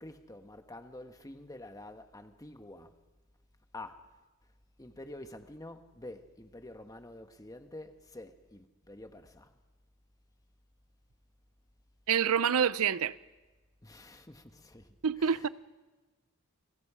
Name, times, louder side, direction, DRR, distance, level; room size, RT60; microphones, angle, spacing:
voice 1, 0.0-3.0 3.7-4.0 4.8-9.5 13.8-14.9 15.2-15.5, left 1 dB, 15° left, 1.4 m, -48 dB
voice 2, 12.1-13.2 15.0-15.5, right 7 dB, 75° right, 0.7 m, -27 dB
29.5 x 23.0 x 5.0 m
head